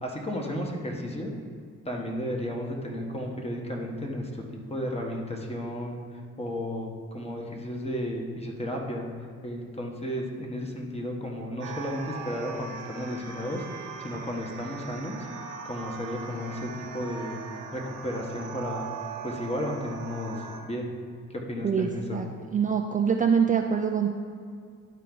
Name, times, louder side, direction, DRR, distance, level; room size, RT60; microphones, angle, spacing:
voice 1, 0.0-1.3 1.8-4.4 4.7-6.0 6.4-9.1 9.4-15.3 15.6-17.4 17.7-18.9 19.2-20.9 21.3-22.2, equal, 20° left, 0 dB, 1.4 m, -33 dB
sound 1, 11.6-20.6, right 6 dB, 80° right, 1.0 m, -40 dB
voice 2, 21.6-22.3 22.5-24.1, right 6 dB, 25° right, 2 dB, 0.4 m, -24 dB
11.5 x 4.5 x 3.9 m, 2.2 s
cardioid pair, 90°, 30 cm